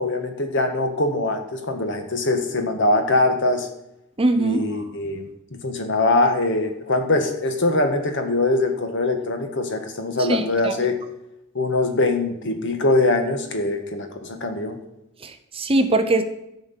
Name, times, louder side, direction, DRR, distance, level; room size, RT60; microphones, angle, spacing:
voice 1, 0.0-3.7 4.4-11.0 11.6-14.8, left 2 dB, 60° left, 6 dB, 1.7 m, -22 dB
voice 2, 4.2-4.8 10.2-10.8 15.2-16.2, right 2 dB, 25° right, 8 dB, 0.7 m, -22 dB
13.5 x 5.0 x 8.3 m, 0.87 s
head